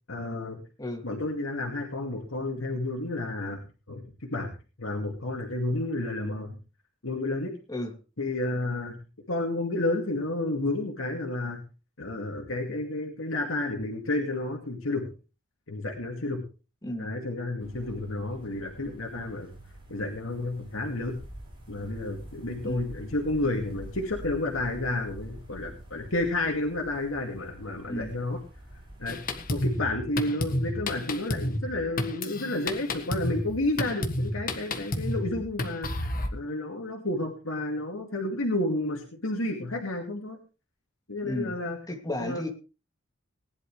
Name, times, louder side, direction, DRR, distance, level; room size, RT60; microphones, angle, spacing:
voice 1, 0.1-0.6 1.0-3.6 3.9-4.0 4.3-4.5 4.8-6.6 7.0-7.5 8.2-9.0 9.3-11.6 12.0-15.1 15.7-16.4 17.0-19.5 19.9-21.2 21.7-28.4 29.0-29.2 29.5-40.4 41.1-41.8 42.2-42.4, left 2 dB, 75° left, 1 dB, 2.4 m, -31 dB
voice 2, 16.8-17.1 22.6-22.9 27.9-28.2 41.2-41.6 41.9-42.5, left 1 dB, 20° left, 3 dB, 2.5 m, -33 dB
sound 1, 17.6-29.7, right 1 dB, 25° right, 5.3 m, -47 dB
Drum kit, 29.1-36.3, left 1 dB, 45° left, 1.6 m, -31 dB
19.5 x 11.0 x 3.3 m, 0.32 s
head